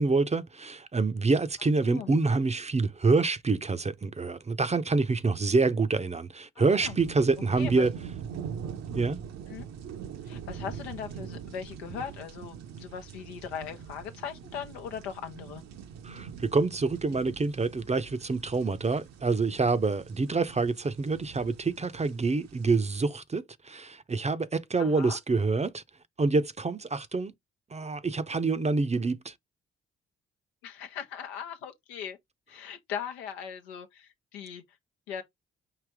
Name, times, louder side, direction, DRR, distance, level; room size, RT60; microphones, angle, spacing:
voice 1, 0.0-7.9 8.9-9.2 16.0-25.8 26.2-27.3 27.7-29.3, right 3 dB, 20° right, 0.6 m, -27 dB
voice 2, 6.6-7.0 7.6-7.9 9.5-9.7 10.2-15.6 24.8-25.2 30.6-32.2 32.5-34.6 35.1-35.2, left 8 dB, 85° left, 0.8 m, -39 dB
sound 1, 6.8-23.0, right 7 dB, 60° right, 0.8 m, -43 dB
5.0 x 2.8 x 3.4 m
hypercardioid pair, 40°, 31 cm